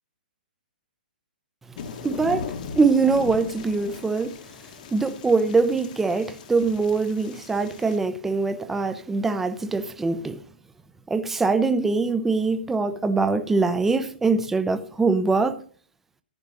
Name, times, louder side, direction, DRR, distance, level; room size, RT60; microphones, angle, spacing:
sound 1, 1.8-8.0, left 6 dB, 50° left, 1.2 m, -39 dB
voice 1, 2.0-4.4 4.9-10.4 11.1-15.7, right 4 dB, 5° right, 0.6 m, -23 dB
14.5 x 5.2 x 8.3 m
hypercardioid pair, 170°, 6 cm